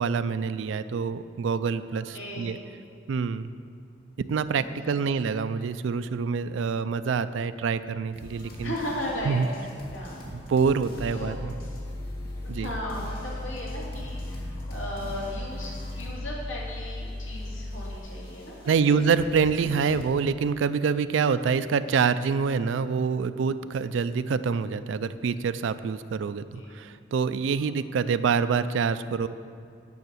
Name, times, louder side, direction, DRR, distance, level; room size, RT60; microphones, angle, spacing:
voice 1, 0.0-2.6 3.1-3.5 4.2-8.7 9.3-9.5 10.5-11.5 12.5-12.7 18.7-29.3, right 5 dB, 70° right, 12 dB, 0.3 m, -26 dB
voice 2, 1.9-2.6 4.5-5.2 8.6-10.3 11.1-11.4 12.4-19.0 26.5-26.7 27.6-28.1, left 1 dB, 90° left, -5 dB, 2.6 m, -37 dB
sound 1, 8.1-16.3 16.6-20.0, equal, 55° left, 2.1 m, -44 dB
Mechanical fan, 11.0-18.0, left 1 dB, 15° left, 0.4 m, -36 dB
9.4 x 5.8 x 7.6 m, 2.4 s
head